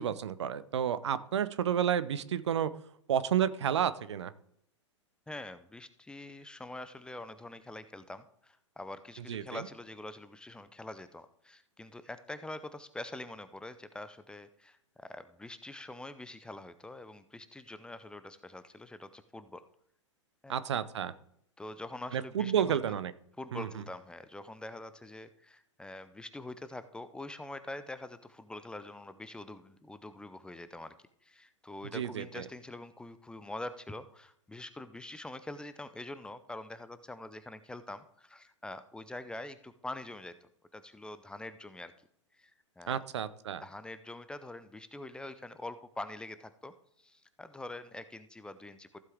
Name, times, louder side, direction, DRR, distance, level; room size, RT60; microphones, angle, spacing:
voice 1, 0.0-2.7 3.1-4.3 9.3-9.7 20.5-21.1 22.1-23.1 23.5-23.8 31.9-32.5 42.9-43.6, right 9 dB, 65° right, 15 dB, 0.7 m, -31 dB
voice 2, 5.3-19.6 20.4-20.6 21.6-23.0 23.4-30.9 31.2-40.3 40.7-41.9 42.4-42.5 42.8-43.0 43.6-49.0, left 2 dB, 5° left, 12 dB, 0.6 m, -45 dB
15.0 x 7.6 x 3.5 m, 0.71 s
figure-of-eight pair, 105°, 16 cm